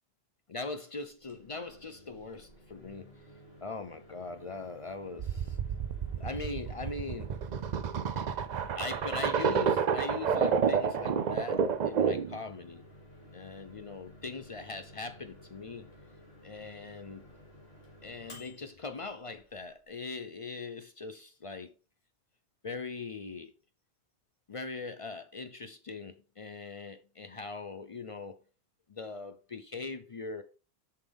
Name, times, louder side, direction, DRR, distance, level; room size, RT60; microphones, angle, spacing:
voice 1, 0.5-3.3 3.6-5.6 6.1-7.4 8.7-12.9 13.3-15.9 16.4-17.2 18.0-21.7 22.6-23.5 24.5-28.4 28.9-30.4, left 3 dB, 40° left, 0.5 m, -41 dB
Microwave oven, 1.2-19.9, left 1 dB, 75° left, 2.4 m, -54 dB
sound 1, 5.2-12.4, right 6 dB, 50° right, 0.6 m, -30 dB
6.9 x 5.7 x 3.5 m
omnidirectional pair, 1.0 m